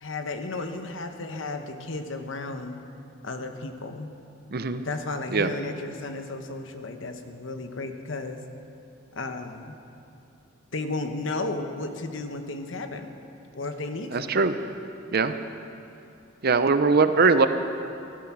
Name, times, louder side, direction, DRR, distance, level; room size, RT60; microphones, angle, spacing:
voice 1, 0.0-2.8 3.2-4.2 4.8-8.4 9.1-9.8 10.7-13.2 13.5-14.3 17.2-17.5, left 2 dB, 65° left, 6 dB, 1.0 m, -34 dB
voice 2, 4.5-4.8 5.3-5.5 14.1-14.6 15.1-15.3 16.4-17.5, right 4 dB, 50° right, 10 dB, 0.6 m, -21 dB
15.5 x 12.0 x 6.1 m, 2.7 s
head